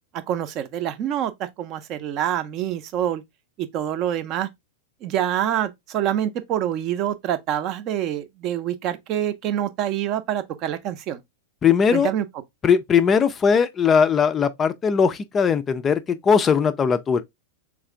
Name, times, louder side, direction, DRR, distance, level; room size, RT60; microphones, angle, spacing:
voice 1, 0.3-3.2 3.6-4.5 5.0-11.2 11.9-12.2, right 11 dB, 40° right, 0.6 m, -26 dB
voice 2, 11.6-12.1 12.6-17.2, left 6 dB, 20° left, 0.4 m, -19 dB
3.6 x 3.2 x 3.5 m
figure-of-eight pair, 90°, 0 cm